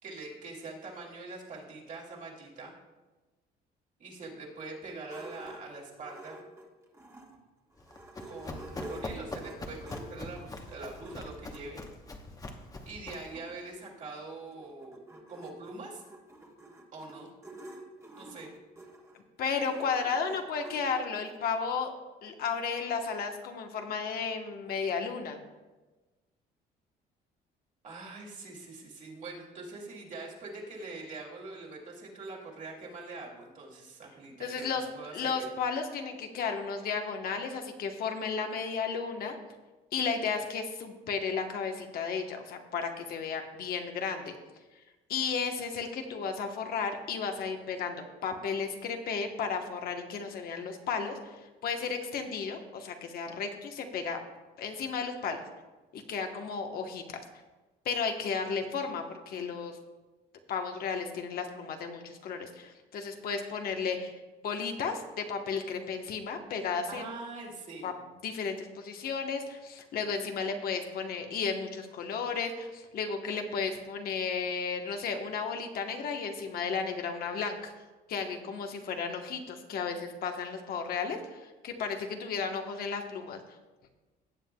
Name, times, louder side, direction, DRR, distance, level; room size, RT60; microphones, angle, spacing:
voice 1, 0.0-2.7 4.0-6.4 8.2-11.8 12.8-15.0 15.3-16.0 16.9-17.3 18.2-18.5 27.8-35.5 66.9-67.9, right 3 dB, 50° right, -1 dB, 2.5 m, -43 dB
sound 1, 5.1-7.4 7.8-11.6 12.4-12.5 12.8-12.9 13.1-21.4, right 1 dB, 15° right, 1.4 m, -48 dB
Run, 7.8-13.4, left 2 dB, 20° left, 0.9 m, -43 dB
voice 2, 19.4-21.9 22.2-25.4 34.4-34.8 35.1-39.4 39.9-44.3 45.1-54.2 54.6-55.4 55.9-57.2 57.8-59.8 60.5-64.2 64.4-67.1 67.8-67.9 68.2-77.7 78.1-83.4, left 5 dB, 65° left, 4 dB, 1.1 m, -34 dB
17.0 x 7.7 x 2.3 m, 1.2 s
cardioid pair, 110°, 17 cm